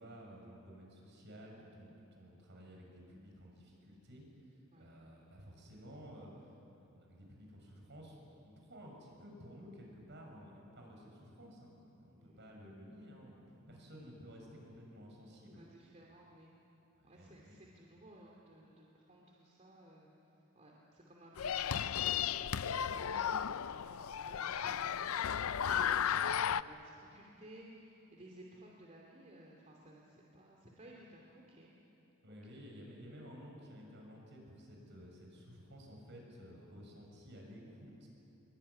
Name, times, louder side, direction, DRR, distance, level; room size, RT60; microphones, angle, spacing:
voice 1, 0.0-6.3 6.8-15.6 17.0-17.6 32.2-38.1, equal, 55° right, 0 dB, 7.0 m, -54 dB
voice 2, 15.5-16.5 17.0-20.1 20.5-31.7 32.3-32.6, right 1 dB, 35° right, -2 dB, 2.8 m, -57 dB
sound 1, 21.4-26.6, left 8 dB, 80° left, 0.5 m, -34 dB
24.5 x 23.5 x 9.9 m, 2.9 s
head